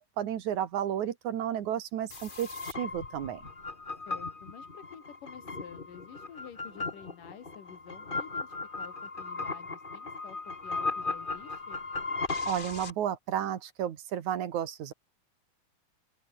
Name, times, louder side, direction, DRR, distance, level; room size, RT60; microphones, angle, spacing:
voice 1, 0.0-3.5 12.5-14.9, right 10 dB, 70° right, 2.8 m, -32 dB
sound 1, 2.1-12.9, left 3 dB, 20° left, 1.4 m, -37 dB
voice 2, 4.1-10.4 10.6-11.8, left 8 dB, 80° left, 4.1 m, -50 dB
open air
omnidirectional pair, 3.7 m